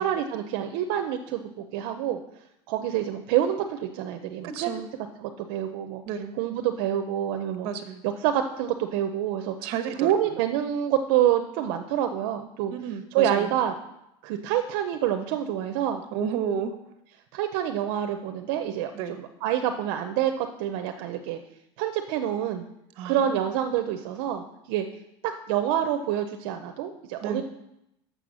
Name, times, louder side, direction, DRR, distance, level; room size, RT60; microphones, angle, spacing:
voice 1, 0.0-2.2 2.7-4.7 5.2-6.0 6.4-7.7 8.0-9.5 10.0-12.7 13.1-13.7 14.2-16.0 17.3-18.9 19.2-21.4 21.8-22.6 23.0-24.8 25.2-27.4, right 10 dB, 75° right, 6 dB, 0.7 m, -27 dB
voice 2, 4.4-4.9 6.1-6.3 7.6-8.0 9.6-10.3 12.7-13.5 16.1-16.7 18.9-19.2 23.0-23.5 27.2-27.4, right 7 dB, 55° right, 7 dB, 1.1 m, -32 dB
7.7 x 6.9 x 6.2 m, 0.84 s
cardioid pair, 155°, 12 cm